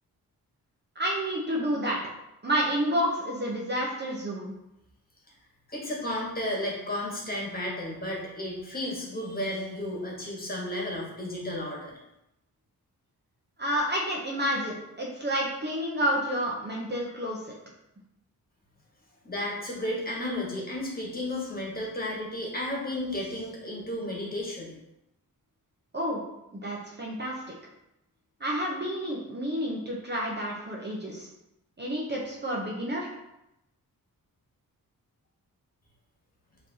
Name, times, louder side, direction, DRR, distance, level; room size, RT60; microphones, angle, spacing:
voice 1, 1.0-2.0 2.4-4.5 13.6-17.4 25.9-26.2 26.5-27.4 28.4-31.3 31.8-33.1, equal, 30° right, -3 dB, 0.8 m, -29 dB
voice 2, 5.7-11.9 19.2-24.7, left 1 dB, 25° left, -3 dB, 1.4 m, -33 dB
5.0 x 2.9 x 2.8 m, 0.87 s
cardioid pair, 90°, 36 cm